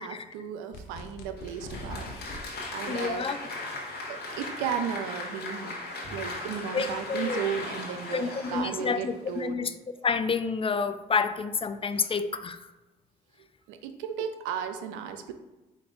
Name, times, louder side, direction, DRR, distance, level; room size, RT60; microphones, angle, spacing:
voice 1, 0.0-3.3 4.1-5.8 6.1-9.6 13.7-15.3, right 8 dB, 80° right, 8 dB, 0.4 m, -35 dB
sound 1, 0.7-2.4, left 1 dB, 80° left, 0.6 m, -41 dB
Applause, 1.4-9.5, left 2 dB, 55° left, 1.2 m, -38 dB
voice 2, 2.9-3.4 6.7-7.4 8.1-9.7 10.0-12.6, left 5 dB, 30° left, 11 dB, 0.4 m, -29 dB
4.4 x 2.6 x 3.7 m, 1.1 s
hypercardioid pair, 45°, 20 cm